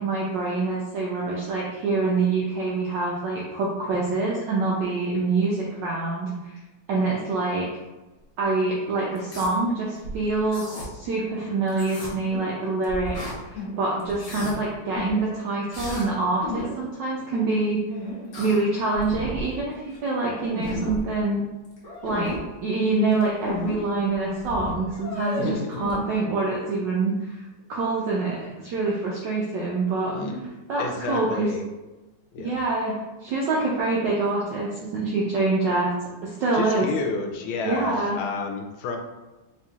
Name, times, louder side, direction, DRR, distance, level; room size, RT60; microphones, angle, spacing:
voice 1, 0.0-6.6 6.9-7.7 8.4-13.2 13.4-17.8 18.4-21.4 22.0-27.4 27.7-30.1 30.7-31.5 32.4-35.9 36.2-36.9 37.6-38.2, right 3 dB, 70° right, -4 dB, 1.2 m, -25 dB
sound 1, 9.1-9.5 10.0-10.8 11.7-12.5 12.8-13.7 14.0-14.5 14.9-15.2 15.7-16.1 16.4-16.7 17.9-18.6 18.9-19.6 19.9-20.0 20.3-21.0 21.6-22.4 23.1-23.7 24.1-24.2 24.4-26.0, left 1 dB, 45° left, 1.1 m, -33 dB
voice 2, 25.4-25.8 30.1-30.4 30.8-31.6 32.3-32.6 36.5-39.0, left 4 dB, 80° left, 3 dB, 1.4 m, -30 dB
4.1 x 3.6 x 2.4 m, 1.1 s
omnidirectional pair, 2.3 m